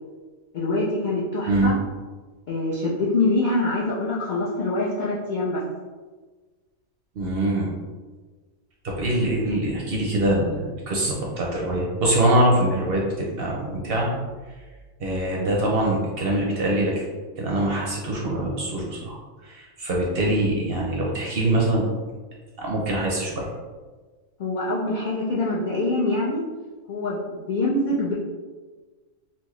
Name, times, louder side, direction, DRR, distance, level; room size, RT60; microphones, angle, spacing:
voice 1, 0.5-1.7 2.5-5.6 24.4-26.4 26.9-28.1, left 2 dB, 70° left, -5 dB, 0.4 m, -24 dB
voice 2, 7.2-7.7 8.8-14.1 15.0-17.0 17.4-19.1 19.4-21.9 22.6-23.5, right 1 dB, 60° right, -2 dB, 0.7 m, -23 dB
4.2 x 2.0 x 3.0 m, 1.4 s
omnidirectional pair, 1.4 m